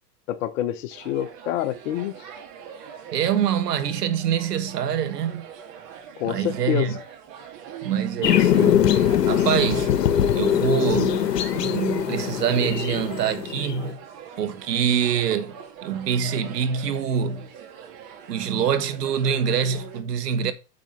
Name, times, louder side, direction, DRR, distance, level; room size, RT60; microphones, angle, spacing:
voice 1, 0.3-2.1 6.2-6.9, left 12 dB, 50° left, 1.1 m, -27 dB
sound 1, 0.9-20.0, right 8 dB, 40° right, 1.7 m, -43 dB
voice 2, 3.1-5.4 6.2-6.9 7.8-8.9 9.3-10.0 10.3-14.0 14.4-15.5 15.8-17.5 18.3-20.5, right 8 dB, 75° right, 1.3 m, -25 dB
sound 2, 8.2-13.9, left 10 dB, 75° left, 1.2 m, -22 dB
7.3 x 5.4 x 4.3 m
hypercardioid pair, 120°, 49 cm